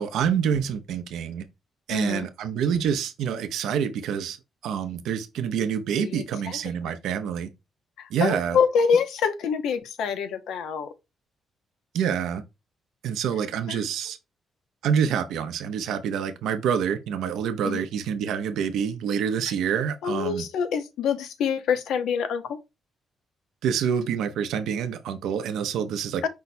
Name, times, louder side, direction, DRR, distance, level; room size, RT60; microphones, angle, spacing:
voice 1, 0.0-1.4 1.9-4.4 4.6-7.5 8.1-8.6 11.9-12.4 13.0-14.2 14.8-20.4 23.6-26.3, right 7 dB, 85° right, 0.7 m, -27 dB
voice 2, 1.9-2.3 6.0-6.6 8.0-10.9 13.7-13.8 17.6-17.8 20.0-22.6 26.2-26.3, left 6 dB, 80° left, 0.7 m, -26 dB
5.5 x 2.2 x 4.1 m
cardioid pair, 165°, 0 cm